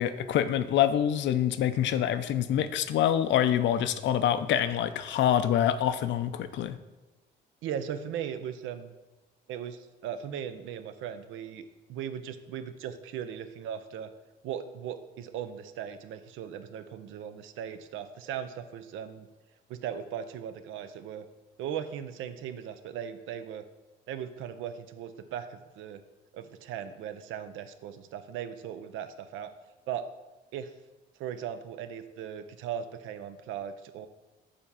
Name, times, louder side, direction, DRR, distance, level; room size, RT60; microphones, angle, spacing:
voice 1, 0.0-6.8, left 10 dB, 65° left, 12 dB, 0.5 m, -26 dB
voice 2, 7.6-8.9 9.5-14.1 14.4-19.3 19.7-21.3 21.6-23.6 24.1-26.0 26.3-29.5 29.9-30.1 30.5-30.7 31.2-34.1, right 9 dB, 80° right, 10 dB, 0.6 m, -38 dB
6.7 x 3.6 x 5.6 m, 1.1 s
cardioid pair, 105°, 20 cm